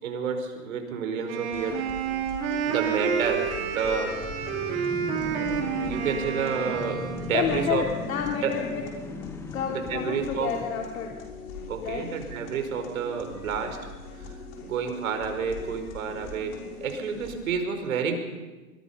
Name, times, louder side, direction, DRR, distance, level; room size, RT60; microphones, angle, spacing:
voice 1, 0.0-1.8 2.6-4.9 5.2-5.4 5.8-7.8 8.4-8.5 9.7-10.5 11.7-13.8 14.1-16.5 16.8-18.2, right 6 dB, 65° right, 6 dB, 5.1 m, -30 dB
Wind instrument woodwind instrument, 1.3-7.5, right 7 dB, 50° right, 5.2 m, -30 dB
sound 1, 1.5-17.5, left 3 dB, 40° left, 5.5 m, -42 dB
sound 2, 3.5-11.6, left 2 dB, 5° left, 1.4 m, -39 dB
voice 2, 7.3-8.8 9.5-11.1 11.8-12.1, left 7 dB, 70° left, 0 dB, 3.4 m, -29 dB
25.5 x 22.0 x 5.7 m, 1.2 s
hypercardioid pair, 130°, 43 cm